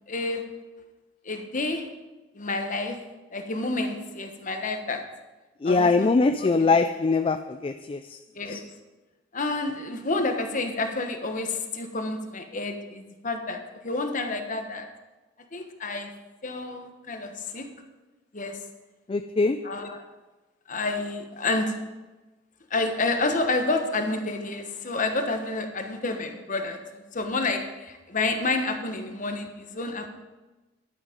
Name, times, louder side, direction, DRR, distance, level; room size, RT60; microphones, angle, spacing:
voice 1, 0.1-0.4 1.2-1.9 2.3-3.0 3.3-5.0 5.6-6.1 6.4-6.7 8.3-8.6 9.3-14.9 15.5-16.1 16.4-17.7 18.3-18.6 19.6-20.0 20.7-21.7 22.7-30.1, left 2 dB, 45° left, 6 dB, 1.2 m, -29 dB
voice 2, 5.6-8.2 8.5-8.6 19.1-19.6, left 3 dB, 30° left, 9 dB, 0.3 m, -22 dB
11.0 x 9.2 x 5.1 m, 1.1 s
head